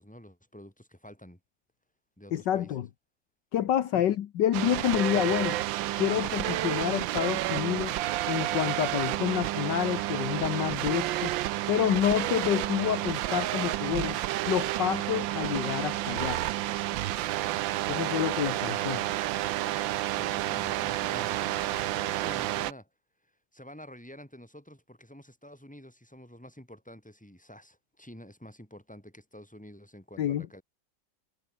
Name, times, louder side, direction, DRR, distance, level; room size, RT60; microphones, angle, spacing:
voice 1, 0.0-1.4 2.2-2.7 3.9-4.0 20.2-22.9 23.5-30.6, equal, 5° left, 4.8 m, -48 dB
voice 2, 2.3-2.9 3.5-5.6 6.0-7.9 8.3-11.3 11.7-14.2 14.5-16.4 17.9-19.0 30.2-30.5, left 11 dB, 70° left, 1.6 m, -28 dB
sound 1, 4.5-22.7, right 14 dB, 90° right, 1.5 m, -30 dB
omnidirectional pair, 2.0 m